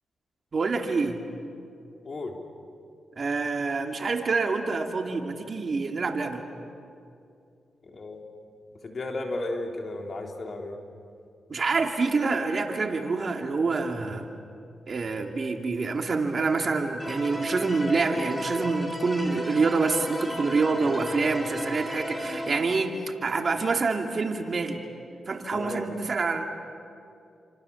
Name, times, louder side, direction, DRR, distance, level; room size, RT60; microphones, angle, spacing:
voice 1, 0.5-1.2 3.2-6.4 11.5-14.2 14.9-23.0 23.2-24.8 25.3-26.4, right 4 dB, 50° right, 4 dB, 2.7 m, -26 dB
voice 2, 7.8-8.2 8.8-10.8 20.8-21.0 25.5-25.8, left 2 dB, 50° left, 2 dB, 3.7 m, -34 dB
sound 1, 17.0-22.6, equal, 20° left, 5.2 m, -34 dB
29.5 x 26.0 x 7.3 m, 2.5 s
cardioid pair, 60°, 0 cm